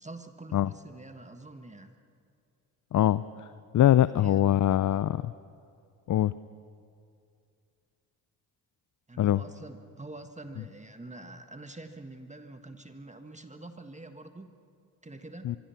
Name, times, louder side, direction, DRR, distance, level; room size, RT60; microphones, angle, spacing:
voice 1, 0.0-2.0 4.1-4.6 9.1-14.5 15.0-15.5, right 2 dB, 15° right, 7 dB, 1.6 m, -46 dB
voice 2, 2.9-3.5 3.7-5.3 6.1-6.3 9.2-9.4 15.4-15.6, left 12 dB, 50° left, 16 dB, 0.6 m, -23 dB
25.0 x 22.5 x 5.9 m, 2.4 s
supercardioid pair, 55°, 41 cm